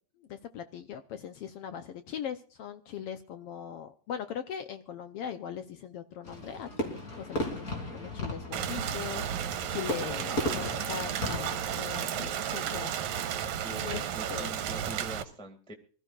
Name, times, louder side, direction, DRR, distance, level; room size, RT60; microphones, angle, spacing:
voice 1, 0.2-13.0 13.4-14.5, left 8 dB, 70° left, 9 dB, 1.4 m, -40 dB
Fireworks, 6.2-12.4, left 1 dB, 30° left, 3.5 m, -36 dB
Rain, 8.5-15.2, right 9 dB, 80° right, 2.5 m, -33 dB
voice 2, 13.4-15.7, right 1 dB, ahead, 2 dB, 1.4 m, -44 dB
25.0 x 13.5 x 2.4 m, 0.42 s
omnidirectional pair, 3.4 m